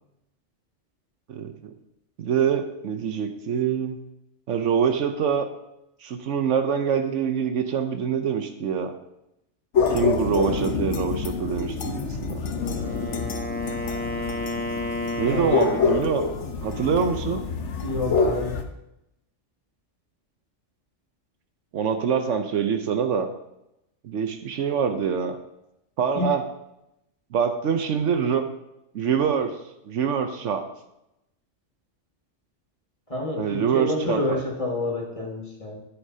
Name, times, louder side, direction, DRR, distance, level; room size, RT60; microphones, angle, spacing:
voice 1, 2.2-4.0 4.5-5.5 6.0-8.9 9.9-12.4 15.2-16.2 16.6-17.4 21.7-23.3 24.0-25.4 26.0-26.4 27.3-28.4 28.9-29.6 29.9-30.6 33.4-34.4, right 7 dB, 75° right, 7 dB, 1.1 m, -25 dB
sound 1, 9.7-18.6, left 5 dB, 70° left, 1.2 m, -27 dB
Wind instrument woodwind instrument, 12.4-16.3, left 2 dB, 10° left, 1.1 m, -31 dB
voice 2, 15.2-15.6 17.8-18.6 26.1-26.4 33.1-35.8, left 2 dB, 25° left, -1 dB, 1.8 m, -28 dB
11.0 x 9.5 x 2.8 m, 0.86 s
omnidirectional pair, 1.3 m